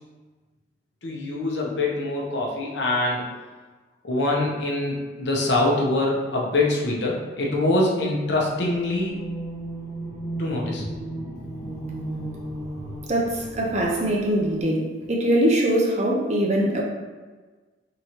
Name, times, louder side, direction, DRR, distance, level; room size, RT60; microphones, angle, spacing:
voice 1, 1.0-3.3 4.0-9.2 10.4-10.9, left 2 dB, 70° left, -2 dB, 0.8 m, -24 dB
sound 1, 8.6-14.6, right 1 dB, 5° left, 1.3 m, -35 dB
voice 2, 13.1-16.8, right 1 dB, 35° right, -2 dB, 0.6 m, -22 dB
3.7 x 3.0 x 2.9 m, 1.3 s
head